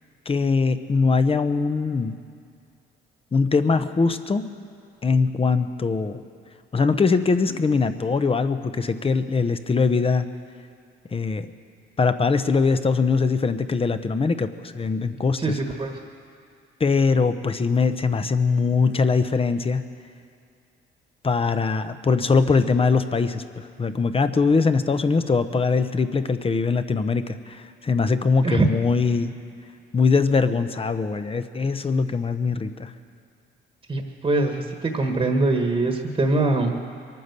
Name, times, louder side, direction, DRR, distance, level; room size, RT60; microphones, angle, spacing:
voice 1, 0.3-2.2 3.3-4.5 5.0-6.2 6.7-10.3 11.1-11.5 12.0-15.6 16.8-19.8 21.2-29.3 29.9-32.9, left 4 dB, 30° left, 10 dB, 0.8 m, -22 dB
voice 2, 15.4-15.9 28.4-28.7 33.9-36.7, right 2 dB, 30° right, 3 dB, 1.5 m, -23 dB
22.5 x 9.4 x 6.8 m, 2.4 s
cardioid pair, 90°, 20 cm